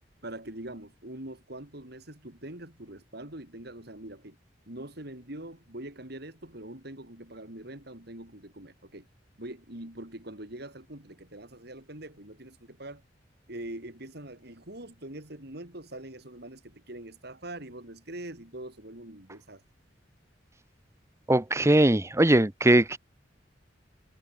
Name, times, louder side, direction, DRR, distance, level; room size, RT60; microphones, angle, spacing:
voice 1, 0.2-4.4 4.7-9.1 9.4-13.0 13.5-19.6, right 1 dB, 60° right, 5.2 m, -43 dB
voice 2, 21.3-23.0, right 1 dB, 15° right, 1.0 m, -21 dB
head